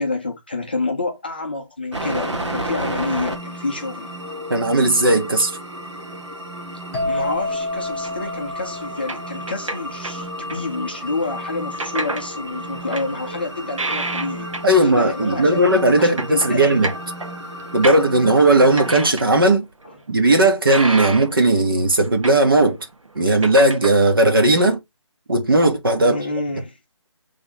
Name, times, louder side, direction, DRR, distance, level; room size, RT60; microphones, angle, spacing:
voice 1, 0.0-4.1 7.0-15.6 16.0-16.9 19.8-19.9 26.0-26.8, left 3 dB, 20° left, 0.7 m, -28 dB
sound 1, 1.9-18.9, right 1 dB, 65° right, 2.0 m, -33 dB
voice 2, 4.5-5.5 14.6-16.9 17.7-19.7 20.1-22.9 23.1-24.8 25.3-26.2, right 2 dB, 45° right, 1.4 m, -16 dB
sound 2, 6.9-10.6, left 2 dB, ahead, 2.2 m, -29 dB
sound 3, 8.0-8.3 9.1-10.8 11.7-12.3 12.7-14.8 15.1-15.2 15.7-18.4 18.7-19.6 19.8-19.9 20.7-21.6 21.9-22.8 23.1-23.9, right 2 dB, 90° right, 1.3 m, -29 dB
7.9 x 3.4 x 3.5 m
figure-of-eight pair, 175°, 16 cm